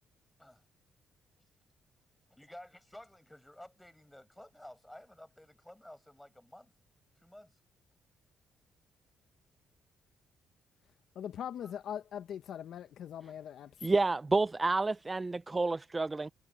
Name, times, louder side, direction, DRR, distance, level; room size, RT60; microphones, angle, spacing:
voice 1, 2.3-6.7 7.2-7.6 11.6-11.7, left 1 dB, 5° left, 7.3 m, -53 dB
voice 2, 11.1-13.7, left 9 dB, 70° left, 1.0 m, -41 dB
voice 3, 13.8-16.3, right 3 dB, 20° right, 0.3 m, -29 dB
cardioid pair, 90°, 0 cm